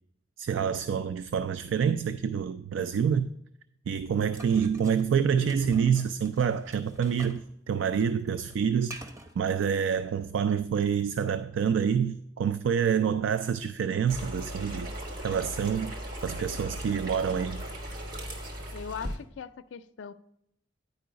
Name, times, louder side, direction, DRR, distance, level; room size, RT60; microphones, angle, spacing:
voice 1, 0.4-3.3 3.9-7.4 7.7-9.0 9.4-14.9 15.2-15.9 16.2-17.6, right 7 dB, 90° right, 0.3 m, -27 dB
sound 1, 4.4-7.5 7.8-9.4, right 1 dB, 15° right, 0.7 m, -47 dB
sound 2, 14.1-19.2, equal, 50° right, 1.4 m, -37 dB
voice 2, 18.7-20.1, left 7 dB, 85° left, 0.4 m, -40 dB
9.7 x 4.7 x 5.1 m
head